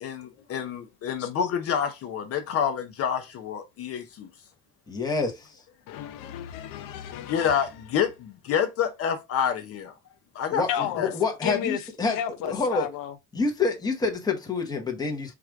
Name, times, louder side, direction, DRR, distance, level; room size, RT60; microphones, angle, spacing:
voice 1, 0.0-4.3 7.3-9.9 10.3-10.6 11.0-11.1, left 8 dB, 45° left, 0.6 m, -28 dB
voice 2, 4.9-5.6 10.5-12.2 12.4-12.9 13.3-15.3, left 4 dB, 10° left, 0.9 m, -27 dB
voice 3, 5.9-7.5 10.7-11.1 11.4-11.8 12.1-13.1, left 10 dB, 85° left, 0.7 m, -32 dB
4.8 x 2.4 x 4.5 m
cardioid pair, 170°, 32 cm